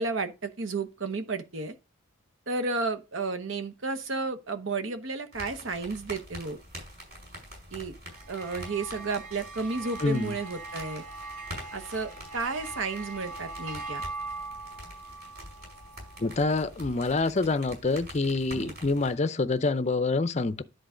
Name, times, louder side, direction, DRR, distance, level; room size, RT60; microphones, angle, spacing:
voice 1, 0.0-1.7 2.5-6.6 7.7-7.9 8.3-11.0 11.7-14.0 18.6-18.7, right 3 dB, 65° right, 1.0 m, -32 dB
sound 1, 5.3-19.1, equal, 45° right, 4.9 m, -46 dB
sound 2, 8.1-16.7, right 3 dB, 80° right, 1.8 m, -41 dB
Trumpet, 9.5-13.9, equal, 25° right, 5.8 m, -57 dB
voice 2, 10.0-10.3 16.2-20.6, left 3 dB, 30° left, 0.5 m, -26 dB
10.5 x 3.9 x 5.0 m
head